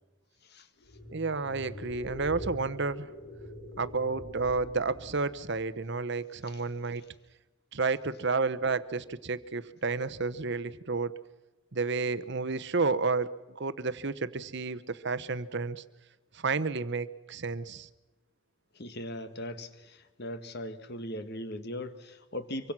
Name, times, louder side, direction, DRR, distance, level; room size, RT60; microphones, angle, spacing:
sound 1, 0.8-5.7, left 1 dB, 80° left, 6.0 m, -44 dB
voice 1, 1.1-3.1 3.8-7.0 7.7-11.2 11.7-15.8 16.3-17.9, right 4 dB, 55° right, 14 dB, 0.9 m, -31 dB
voice 2, 18.8-22.7, left 1 dB, 50° left, 10 dB, 1.7 m, -39 dB
25.0 x 24.0 x 6.1 m, 1.1 s
head